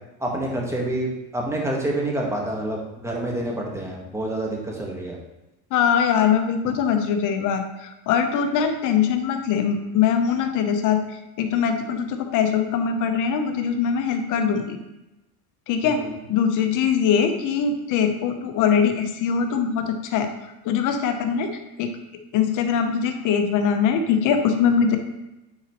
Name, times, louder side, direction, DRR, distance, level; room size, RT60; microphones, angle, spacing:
voice 1, 0.2-5.2 15.8-16.2, right 1 dB, 5° right, -1 dB, 1.3 m, -28 dB
voice 2, 5.7-7.6 8.1-11.0 11.4-14.8 15.7-16.0 16.3-20.3 20.7-21.5 21.8-21.9 22.3-25.0, left 7 dB, 45° left, 6 dB, 0.8 m, -22 dB
9.6 x 4.0 x 3.0 m, 0.98 s
supercardioid pair, 125°, 42 cm